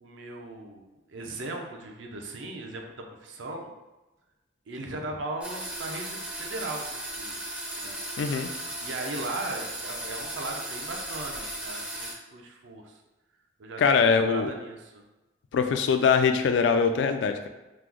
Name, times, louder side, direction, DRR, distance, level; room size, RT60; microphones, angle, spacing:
voice 1, 0.0-3.7 4.7-7.4 7.8-8.0 8.8-13.0 13.6-15.0, right 2 dB, 85° right, 2 dB, 0.5 m, -38 dB
sound 1, 5.4-12.1, right 1 dB, 5° right, 0.4 m, -36 dB
voice 2, 8.2-8.5 13.8-14.5 15.5-17.5, left 5 dB, 75° left, 6 dB, 0.3 m, -22 dB
3.0 x 2.0 x 3.6 m, 1.1 s
head